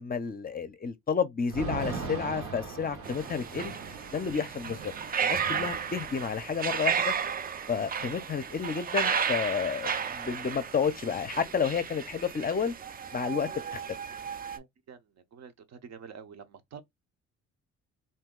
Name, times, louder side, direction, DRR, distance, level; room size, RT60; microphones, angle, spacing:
voice 1, 0.0-3.7 4.1-4.9 5.2-7.1 7.7-12.7 13.1-13.8, left 6 dB, 30° left, 0.5 m, -31 dB
Thunder / Rain, 1.5-9.4 9.6-9.7 10.0-11.4, right 4 dB, 85° right, 1.2 m, -41 dB
sound 1, 3.0-14.6, right 7 dB, 30° right, 0.4 m, -33 dB
voice 2, 14.5-15.0 15.3-16.8, right 7 dB, 60° right, 0.7 m, -47 dB
2.6 x 2.2 x 3.6 m
cardioid pair, 90°, 30 cm